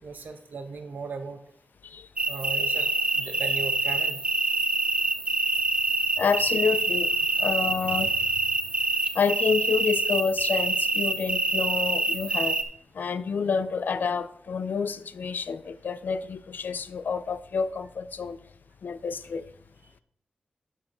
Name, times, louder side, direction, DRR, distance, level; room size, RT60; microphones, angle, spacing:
voice 1, 0.0-1.4 2.3-4.2, right 4 dB, 80° right, 1.1 m, -37 dB
sound 1, 2.2-12.6, right 3 dB, 35° right, 0.8 m, -26 dB
voice 2, 6.2-7.1 7.4-8.1 9.1-12.6 13.0-18.4 18.8-19.4, left 5 dB, 80° left, 0.5 m, -28 dB
12.0 x 4.6 x 4.3 m
wide cardioid pair, 85°, 3 cm